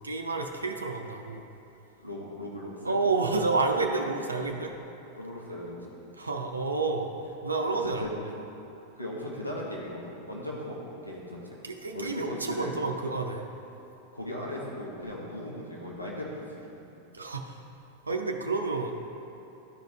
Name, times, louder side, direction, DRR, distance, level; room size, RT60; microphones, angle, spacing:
voice 1, 0.0-1.5 2.8-4.7 6.1-7.1 7.4-8.0 11.6-13.5 17.1-17.6 18.1-19.0, right 3 dB, 80° right, 3 dB, 0.5 m, -29 dB
voice 2, 2.0-2.9 5.2-5.9 7.7-8.1 8.9-11.6 11.9-12.7 14.1-16.8, left 1 dB, 90° left, -5 dB, 1.3 m, -38 dB
12.5 x 5.1 x 3.1 m, 3.0 s
figure-of-eight pair, 90°, 0 cm